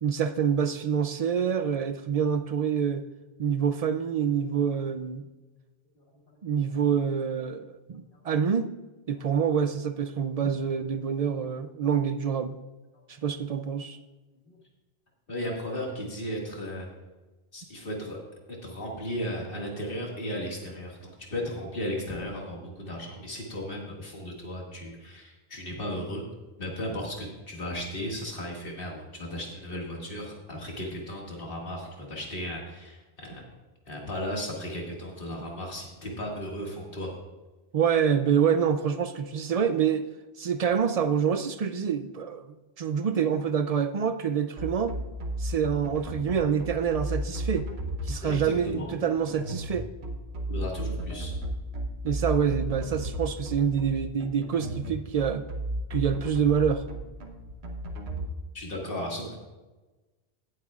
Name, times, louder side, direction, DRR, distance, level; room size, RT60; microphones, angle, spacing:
voice 1, 0.0-3.1 3.4-5.2 6.4-8.7 9.1-12.6 13.2-14.0 37.7-40.0 40.4-42.5 42.8-44.9 45.4-47.7 48.0-49.9 52.0-55.4 55.9-56.8, right 7 dB, 55° right, 10 dB, 0.4 m, -26 dB
voice 2, 15.3-16.9 17.5-18.2 18.5-26.2 26.6-33.4 33.9-37.1 48.2-48.9 50.5-51.3 58.5-59.4, equal, 60° left, -2 dB, 2.2 m, -35 dB
sound 1, 44.6-58.3, right 1 dB, 80° right, 1.3 m, -34 dB
17.5 x 7.7 x 2.4 m, 1.2 s
omnidirectional pair, 1.1 m